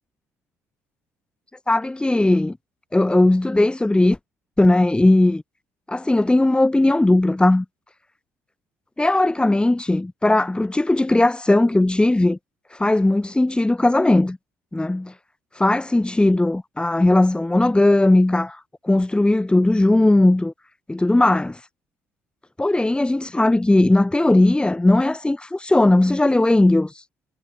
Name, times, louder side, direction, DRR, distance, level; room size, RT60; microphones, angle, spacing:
voice 1, 1.7-2.6 2.9-4.2 4.6-5.4 5.9-7.6 9.0-12.4 12.7-14.4 14.7-15.1 15.6-20.5 20.9-21.6 22.6-26.9, left 2 dB, 10° left, 4.0 m, -18 dB
figure-of-eight pair, 45°, 8 cm